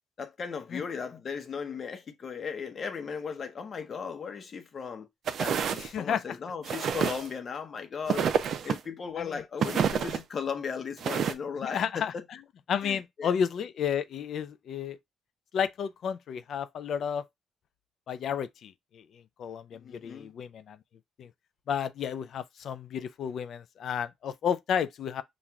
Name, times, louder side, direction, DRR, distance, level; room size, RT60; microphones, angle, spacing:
voice 1, 0.2-5.1 5.4-8.3 8.6-12.2 12.8-13.3 19.7-20.3, left 6 dB, 50° left, 0.9 m, -36 dB
sound 1, 5.3-5.9 6.6-7.3 8.1-8.8 9.6-10.2 11.0-11.3, right 7 dB, 65° right, 0.5 m, -28 dB
voice 2, 5.8-6.4 9.2-9.4 11.6-12.1 12.7-15.0 15.5-17.2 18.1-20.8 21.2-21.3 21.7-25.2, left 8 dB, 65° left, 0.4 m, -32 dB
5.8 x 2.5 x 2.3 m
cardioid pair, 90°, 0 cm